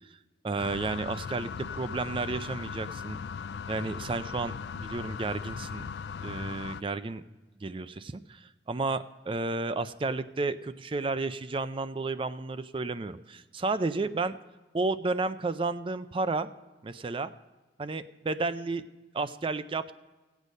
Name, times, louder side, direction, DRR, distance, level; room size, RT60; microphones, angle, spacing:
voice 1, 0.4-3.2 3.7-5.9 6.2-7.2 7.6-14.4 14.7-16.5 16.8-17.3 17.8-18.8 19.1-19.9, right 3 dB, 30° right, 13 dB, 0.4 m, -32 dB
sound 1, 0.6-6.8, left 6 dB, 65° left, 0.3 m, -38 dB
17.0 x 8.2 x 5.3 m, 1.2 s
head